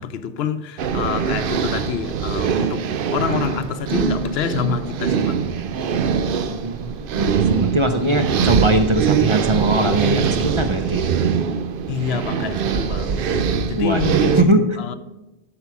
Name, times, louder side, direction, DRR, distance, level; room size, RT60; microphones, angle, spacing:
voice 1, 0.0-5.5 11.9-13.3 13.7-15.0, left 7 dB, 90° left, 0.9 m, -27 dB
sound 1, 0.8-14.4, right 6 dB, 65° right, 0.7 m, -22 dB
voice 2, 6.5-6.9 7.1-11.1 13.7-14.6, right 1 dB, 35° right, 0.6 m, -20 dB
8.0 x 6.0 x 5.9 m
omnidirectional pair, 1.0 m